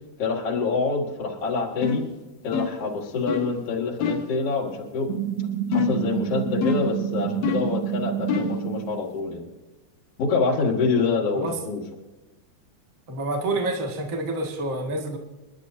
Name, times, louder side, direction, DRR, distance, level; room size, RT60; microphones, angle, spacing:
voice 1, 0.2-2.0 2.4-5.1 5.7-9.4 10.2-11.8, left 4 dB, 50° left, -2 dB, 2.8 m, -26 dB
sound 1, 1.8-2.1 2.5-2.9 3.3-3.5 4.0-4.3 5.7-6.1 6.6-7.0 7.4-7.8 8.3-8.6, left 6 dB, 85° left, 3.2 m, -26 dB
sound 2, 5.1-9.0, right 10 dB, 85° right, 2.7 m, -28 dB
voice 2, 13.1-15.2, right 2 dB, 30° right, 1 dB, 1.9 m, -28 dB
30.0 x 11.5 x 2.7 m, 1.1 s
omnidirectional pair, 4.0 m